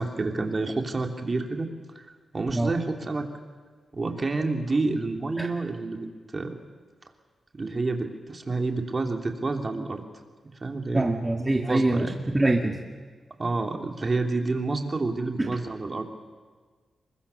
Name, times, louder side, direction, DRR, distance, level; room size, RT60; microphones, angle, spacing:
voice 1, 0.0-3.3 3.9-6.6 7.5-10.0 10.6-11.2 11.6-12.1 13.4-16.1, right 3 dB, 40° right, 3 dB, 3.0 m, -29 dB
voice 2, 10.9-12.8 15.4-15.5, right 2 dB, 20° right, 2 dB, 2.1 m, -24 dB
28.5 x 23.0 x 7.0 m, 1.5 s
cardioid pair, 80°, 0 cm